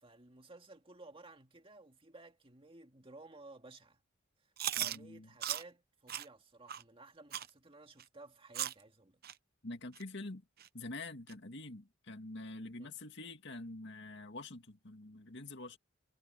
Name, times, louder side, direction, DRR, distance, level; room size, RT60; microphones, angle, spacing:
voice 1, 0.0-4.0 4.4-9.2 12.8-12.9, right 2 dB, 30° right, 2.1 m, -56 dB
Chewing mastication, 4.6-5.0 5.4-5.6 6.1-6.2 6.7-6.8 7.3-7.5 8.0-8.1 8.5-8.8 9.2-9.3 9.9-10.0 10.6-10.7 11.3-11.4, right 11 dB, 50° right, 0.7 m, -37 dB
voice 2, 4.8-5.3 9.6-10.4 10.7-15.8, left 2 dB, 60° left, 2.2 m, -46 dB
head